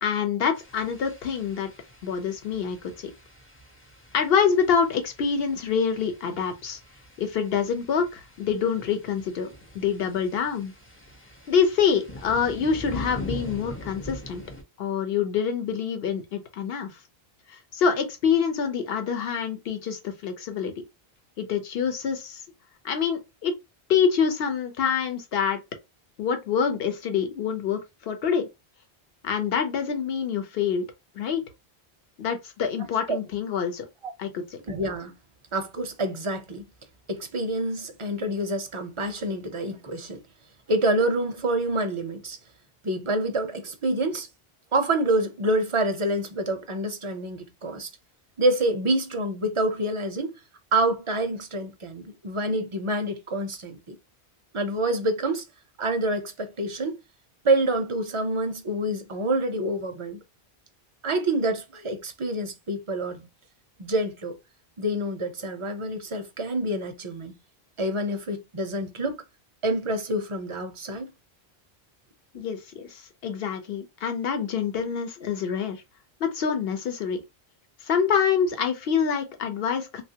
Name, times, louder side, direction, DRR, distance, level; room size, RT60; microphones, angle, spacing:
voice 1, 0.0-1.7 2.0-3.1 4.1-6.8 7.2-9.5 9.7-10.7 11.5-14.4 14.8-16.9 17.5-20.8 21.4-22.4 22.8-23.5 23.9-25.6 26.2-28.5 29.2-30.9 31.2-31.4 32.2-33.9 34.2-34.4 72.3-75.8 76.2-77.2 77.8-80.0, left 7 dB, 70° left, 0.9 m, -26 dB
sound 1, 0.5-14.6, equal, 15° left, 0.5 m, -43 dB
voice 2, 34.7-35.2 35.5-36.6 37.1-40.2 40.7-42.4 42.8-44.3 44.7-47.9 48.4-50.4 50.7-54.0 54.5-55.4 55.8-57.0 57.4-60.2 61.0-63.3 63.8-64.4 64.8-67.4 67.8-69.2 69.6-71.1, right 1 dB, 40° right, 0.5 m, -27 dB
3.2 x 2.3 x 2.8 m
omnidirectional pair, 1.1 m